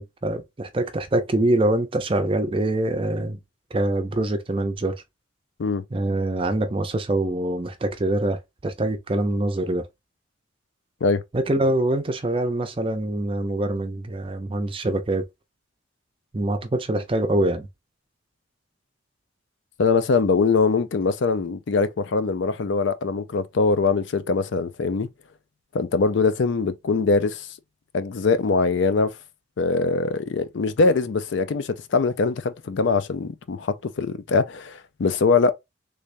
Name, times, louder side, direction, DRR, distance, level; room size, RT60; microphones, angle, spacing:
voice 1, 0.0-3.4 3.7-5.0 5.9-9.8 11.3-15.2 16.3-17.7, right 1 dB, 25° right, 0.5 m, -24 dB
voice 2, 19.8-25.1 25.7-27.5 27.9-29.2 29.6-35.5, left 4 dB, 65° left, 0.4 m, -22 dB
3.3 x 3.3 x 2.5 m
head